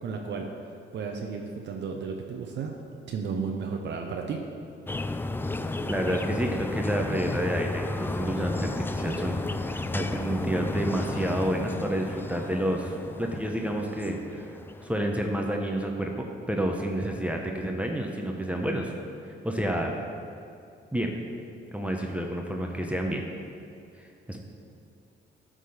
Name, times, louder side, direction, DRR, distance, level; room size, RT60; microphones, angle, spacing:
voice 1, 0.0-0.5 0.9-2.7 3.1-4.4, right 5 dB, 65° right, 2 dB, 0.8 m, -33 dB
sound 1, 4.9-14.9, left 2 dB, 10° left, 0.3 m, -33 dB
voice 2, 5.9-12.9 13.2-18.9 19.4-19.9 20.9-21.1 21.7-23.3 24.0-24.4, right 1 dB, 5° right, 1 dB, 0.8 m, -29 dB
11.0 x 3.8 x 6.5 m, 2.4 s
cardioid pair, 90°, 20 cm